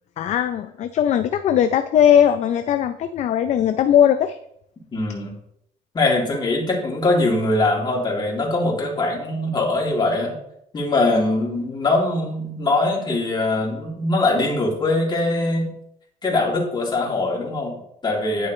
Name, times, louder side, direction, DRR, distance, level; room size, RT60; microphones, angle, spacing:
voice 1, 0.2-4.4, left 9 dB, 50° left, 10 dB, 0.4 m, -19 dB
voice 2, 4.9-5.3 5.9-10.3 10.7-15.7 16.2-18.5, left 2 dB, 30° left, -2 dB, 2.7 m, -22 dB
10.5 x 6.3 x 3.2 m, 0.74 s
cardioid pair, 115°, 15 cm